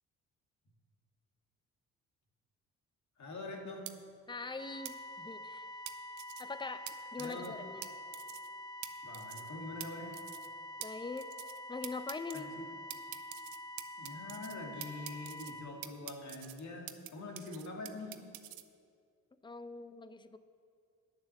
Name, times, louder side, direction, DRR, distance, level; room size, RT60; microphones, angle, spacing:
voice 1, 3.2-4.0 7.2-7.6 9.0-10.2 12.3-12.6 14.0-18.2, left 2 dB, 50° left, 1 dB, 2.2 m, -44 dB
sound 1, 3.9-4.0 4.8-4.9 5.9-6.4 6.9-7.0 7.2-7.5 7.8-7.9 8.1-8.5 8.8-8.9 9.1-9.5 9.8-9.9 10.1-10.5 10.8-10.9 11.2-11.6 11.8-12.4 12.9-14.6 14.8-15.5 15.8-17.1 17.4-18.6, right 15 dB, 70° right, 0.7 m, -45 dB
voice 2, 4.3-5.8 6.4-6.8 7.1-7.9 10.8-11.3 11.7-12.5 19.4-20.4, left 4 dB, 15° left, 12 dB, 0.7 m, -42 dB
sound 2, 4.6-15.6, left 1 dB, 35° right, 2.4 m, -47 dB
9.9 x 6.9 x 6.6 m, 2.2 s
hypercardioid pair, 50°, 36 cm